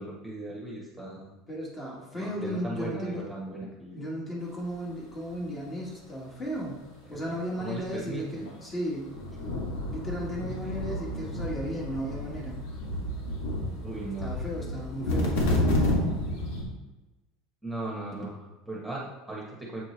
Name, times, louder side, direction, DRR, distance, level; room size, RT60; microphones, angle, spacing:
voice 1, 0.0-1.3 2.1-4.0 7.1-8.5 9.4-9.6 10.6-10.7 13.8-14.3 17.6-19.8, right 2 dB, 5° right, -4 dB, 1.3 m, -38 dB
voice 2, 1.5-3.3 3.9-6.8 7.1-9.1 9.9-12.6 14.2-15.4, equal, 20° left, -3 dB, 1.5 m, -35 dB
sound 1, 8.5-8.6 9.1-16.6, left 1 dB, 90° left, 2.1 m, -30 dB
7.9 x 4.5 x 3.2 m, 1.1 s
supercardioid pair, 160°, 0 cm